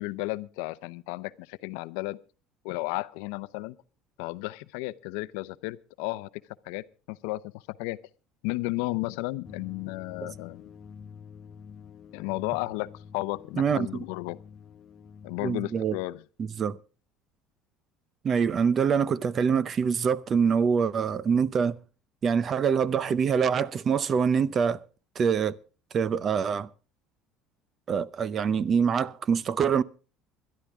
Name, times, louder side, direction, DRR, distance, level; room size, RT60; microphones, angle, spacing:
voice 1, 0.0-2.2 2.6-3.8 4.2-6.3 6.6-8.0 8.4-10.7 12.1-14.4 15.2-16.2, left 21 dB, 85° left, 0.6 m, -33 dB
sound 1, 9.4-15.5, left 6 dB, 30° left, 1.2 m, -47 dB
voice 2, 13.6-13.9 15.4-16.0 16.4-16.8 18.2-21.8 22.2-24.8 25.2-25.6 25.9-26.7 27.9-29.8, right 6 dB, 30° right, 0.6 m, -25 dB
21.5 x 12.0 x 3.6 m
cardioid pair, 150°, 0 cm